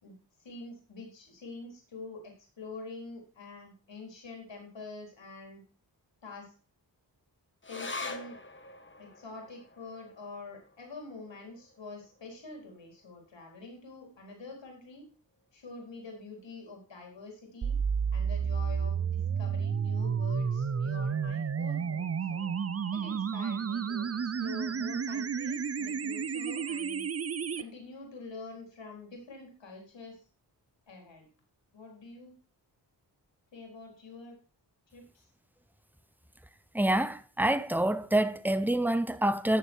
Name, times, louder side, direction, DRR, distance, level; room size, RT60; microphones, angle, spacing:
voice 1, 0.0-5.6 6.2-6.5 7.7-8.4 9.0-15.1 15.5-17.8 18.1-19.0 19.4-22.5 22.9-27.1 27.6-30.2 30.9-31.3 31.7-32.3 33.5-34.4 34.9-35.3, left 3 dB, 80° left, 4.2 m, -46 dB
sound 1, 7.6-14.4 14.7-14.8 15.2-15.8 16.4-16.5, left 3 dB, 25° left, 1.4 m, -46 dB
sound 2, 17.6-27.6, right 6 dB, 35° right, 0.6 m, -31 dB
voice 2, 36.7-39.6, right 1 dB, 5° right, 0.8 m, -27 dB
13.5 x 6.7 x 4.5 m
wide cardioid pair, 70°, 44 cm